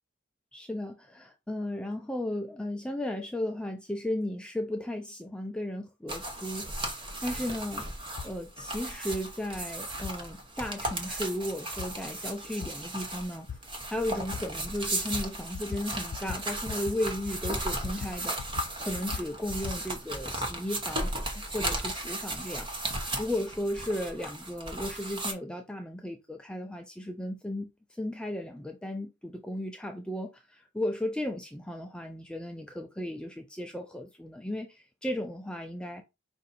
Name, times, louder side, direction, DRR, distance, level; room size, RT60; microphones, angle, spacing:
voice 1, 0.5-6.7 7.2-7.8 8.2-13.5 13.9-18.4 18.8-22.7 23.2-36.0, left 1 dB, 5° left, 0.3 m, -35 dB
sound 1, 6.1-25.3, right 1 dB, 25° right, 0.8 m, -36 dB
sound 2, 8.2-8.3 9.1-9.2 10.0-10.1 10.9-11.0 11.8-11.9 12.6-12.7 13.5-13.6 14.3-14.4 15.1-15.3 15.5-15.8 16.1-16.4 16.7-17.0 17.2-18.1 18.4-19.8, left 6 dB, 80° left, 0.4 m, -39 dB
5.1 x 2.6 x 4.0 m
head